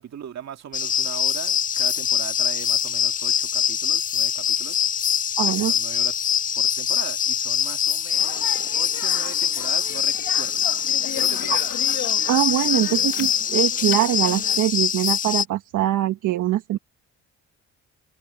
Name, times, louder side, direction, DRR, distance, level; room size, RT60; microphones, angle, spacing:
voice 1, 0.0-4.8 5.4-6.2 6.5-10.6 11.1-11.6, right 9 dB, 60° right, 2.5 m, -39 dB
sound 1, 0.7-15.4, left 8 dB, 30° left, 0.3 m, -23 dB
voice 2, 5.4-5.7 11.5-11.6 12.3-16.8, right 13 dB, 85° right, 1.3 m, -23 dB
Speech, 8.1-14.6, left 14 dB, 90° left, 1.4 m, -37 dB
cardioid pair, 90°, 30 cm